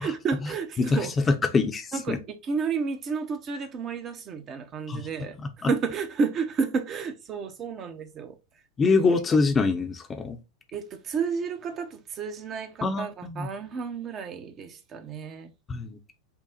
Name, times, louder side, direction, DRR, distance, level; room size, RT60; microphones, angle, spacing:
voice 1, 0.0-1.3 1.9-8.3 9.1-9.2 10.7-15.5, right 5 dB, 30° right, 0.7 m, -31 dB
voice 2, 1.5-2.2 4.9-5.0 5.6-5.7 8.8-10.4 12.8-13.5 15.7-16.0, left 4 dB, 20° left, 0.7 m, -24 dB
5.8 x 2.1 x 4.0 m
figure-of-eight pair, 90°, 0 cm